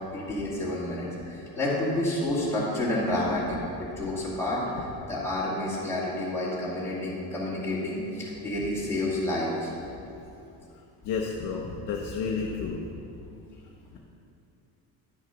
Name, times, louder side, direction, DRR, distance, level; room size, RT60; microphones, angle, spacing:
voice 1, 0.1-9.7, left 1 dB, 5° left, -8 dB, 2.2 m, -29 dB
voice 2, 11.0-12.8, left 5 dB, 45° left, 0 dB, 0.8 m, -31 dB
11.0 x 6.4 x 5.8 m, 2.7 s
cardioid pair, 170°, 43 cm